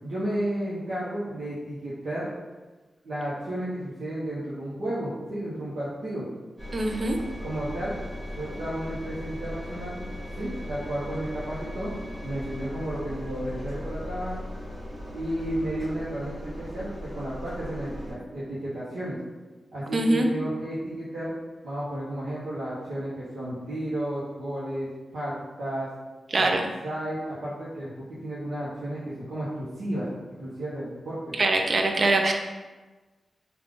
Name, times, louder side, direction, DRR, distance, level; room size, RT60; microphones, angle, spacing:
voice 1, 0.0-2.3 3.0-6.2 7.4-8.0 8.4-9.9 10.3-11.9 12.2-14.4 15.1-19.2 19.7-25.9 26.4-26.5 26.8-30.1 30.4-31.3, right 1 dB, 75° right, -10 dB, 0.8 m, -33 dB
Engine, 6.6-18.1, equal, ahead, 1.4 m, -38 dB
voice 2, 6.7-7.2 19.9-20.3 26.3-26.6 31.4-32.3, right 2 dB, 50° right, 3 dB, 0.4 m, -23 dB
3.4 x 2.3 x 3.7 m, 1.2 s
wide cardioid pair, 100°, 0 cm